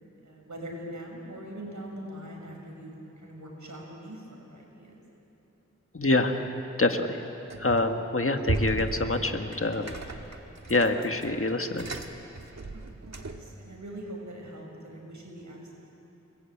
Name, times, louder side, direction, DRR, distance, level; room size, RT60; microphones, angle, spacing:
voice 1, 0.2-5.0 12.7-15.7, right 1 dB, 85° right, -1 dB, 6.2 m, -42 dB
voice 2, 5.9-7.2 7.6-9.9 10.7-11.9, left 2 dB, 50° left, 5 dB, 1.7 m, -26 dB
sound 1, 7.5-8.0 8.4-13.5, right 2 dB, 65° right, 1.8 m, -35 dB
30.0 x 21.0 x 8.6 m, 2.9 s
wide cardioid pair, 55°, 29 cm